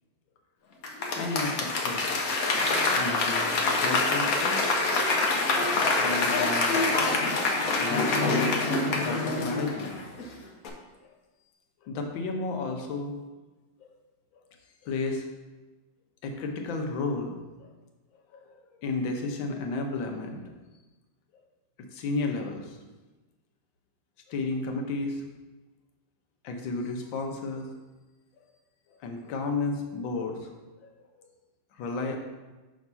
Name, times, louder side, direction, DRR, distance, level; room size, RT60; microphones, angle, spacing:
Applause / Crowd, 0.8-10.3 10.6-10.7, left 3 dB, 60° left, 1.1 m, -26 dB
voice 1, 1.1-2.2 2.9-3.5 3.8-4.6 5.7-6.8 7.8-8.6 9.0-10.2 11.8-13.1 14.3-14.4 14.8-15.3 16.2-17.7 18.3-20.5 21.8-22.8 24.3-25.2 26.4-27.7 29.0-30.5 30.8-30.9 31.8-32.2, left 3 dB, 80° left, 2 dB, 1.5 m, -32 dB
6.2 x 3.5 x 5.4 m, 1.2 s
omnidirectional pair, 2.1 m